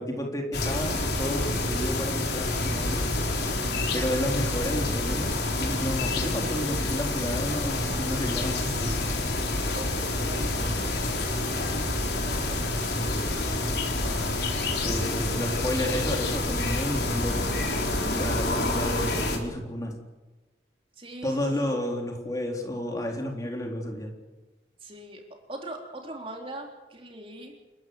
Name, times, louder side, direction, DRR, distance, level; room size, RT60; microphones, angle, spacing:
voice 1, 0.0-3.0 3.9-9.1 14.7-17.5 18.1-20.0 21.2-24.1, left 1 dB, 20° left, 1 dB, 3.8 m, -31 dB
sound 1, 0.5-19.4, left 2 dB, 70° left, 3.9 m, -28 dB
voice 2, 9.6-10.8 11.1-14.7 15.9-16.2 21.0-21.7 24.8-25.2 25.5-27.5, right 1 dB, 30° right, 2 dB, 3.7 m, -43 dB
29.0 x 15.0 x 7.9 m, 1.2 s
head